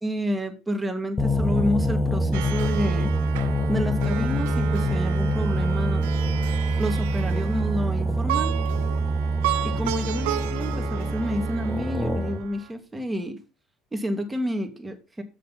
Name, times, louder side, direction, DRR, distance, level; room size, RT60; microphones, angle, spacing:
voice 1, 0.0-3.1 3.7-6.0 6.8-8.6 9.6-13.4 13.9-15.2, equal, 10° right, 5 dB, 2.1 m, -29 dB
sound 1, 1.2-12.5, right 1 dB, 15° left, 1.3 m, -25 dB
Plucked string instrument, 2.3-12.7, right 14 dB, 85° right, 0.7 m, -34 dB
6.6 x 6.1 x 5.5 m, 0.30 s
supercardioid pair, 90°, 0 cm